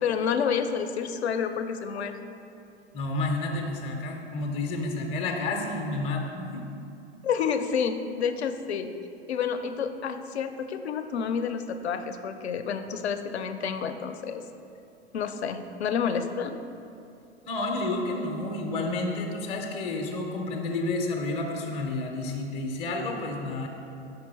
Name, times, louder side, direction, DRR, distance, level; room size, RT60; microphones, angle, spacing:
voice 1, 0.0-2.2 7.2-8.9 9.3-14.4 15.1-16.6, left 6 dB, 70° left, 9 dB, 0.5 m, -29 dB
voice 2, 2.9-6.6 17.4-23.7, left 2 dB, 20° left, 2 dB, 0.5 m, -30 dB
5.3 x 4.7 x 4.0 m, 2.7 s
figure-of-eight pair, 95°, 34 cm